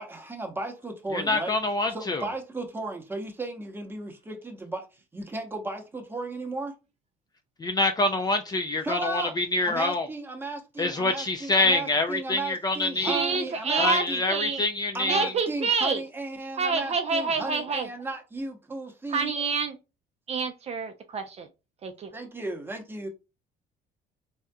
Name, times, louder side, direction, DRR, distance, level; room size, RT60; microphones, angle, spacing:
voice 1, 0.0-1.5 1.9-4.9 5.1-6.7 8.8-9.3 9.6-14.2 14.9-19.3 22.1-23.1, right 2 dB, 15° right, 0.8 m, -35 dB
voice 2, 1.1-2.2 7.6-10.1 10.8-13.2 13.8-15.3, left 2 dB, 25° left, 0.4 m, -26 dB
voice 3, 12.9-14.6 15.1-16.0 16.6-17.9 19.1-19.8 20.3-21.5 21.8-22.1, right 5 dB, 40° right, 0.4 m, -27 dB
3.5 x 2.7 x 2.2 m
cardioid pair, 110°, 17 cm